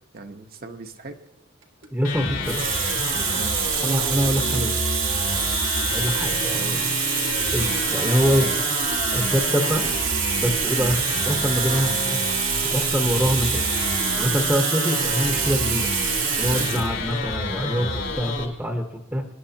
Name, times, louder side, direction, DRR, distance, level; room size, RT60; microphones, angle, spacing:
voice 1, 0.1-1.2 3.3-3.6 4.2-4.6 10.8-11.0 11.6-12.0 16.5-16.7, right 2 dB, 50° right, 5 dB, 1.0 m, -38 dB
Water tap faucet, 1.6-1.9 2.4-16.9 17.8-18.0, right 9 dB, 75° right, 1.5 m, -26 dB
voice 2, 1.9-2.6 3.8-4.7 5.9-6.8 7.5-8.5 9.1-9.8 10.4-10.9 11.3-12.2 12.7-13.6 14.2-15.9 16.4-19.3, equal, 10° right, 3 dB, 1.0 m, -24 dB
sound 1, 2.0-18.4, left 3 dB, 80° left, 3.6 m, -29 dB
24.5 x 11.0 x 2.8 m, 0.93 s
head